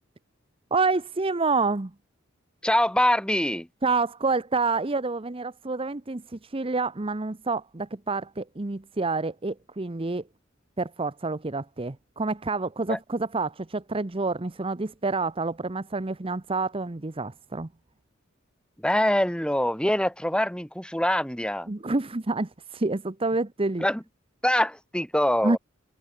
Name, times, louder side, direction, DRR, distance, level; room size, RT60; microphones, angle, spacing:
voice 1, 0.7-1.9 3.8-10.2 10.8-17.7 21.7-23.8 25.4-25.6, right 3 dB, 30° right, 0.8 m, -28 dB
voice 2, 2.6-3.7 12.9-13.0 18.8-21.7 23.8-24.0 24.4-25.6, left 1 dB, 5° left, 6.6 m, -24 dB
head